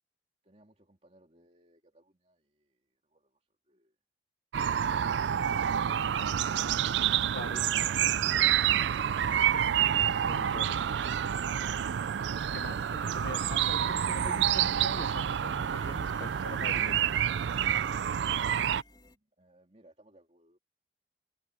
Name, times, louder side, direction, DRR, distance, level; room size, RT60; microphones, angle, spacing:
voice 1, 0.4-4.0 18.2-20.6, right 1 dB, 35° right, 3.2 m, -63 dB
sound 1, 4.5-18.8, right 9 dB, 80° right, 0.4 m, -28 dB
voice 2, 7.3-7.6 10.2-10.7 12.5-17.1, left 2 dB, 65° left, 1.2 m, -43 dB
sound 2, 8.3-19.2, left 3 dB, 25° left, 2.5 m, -61 dB
head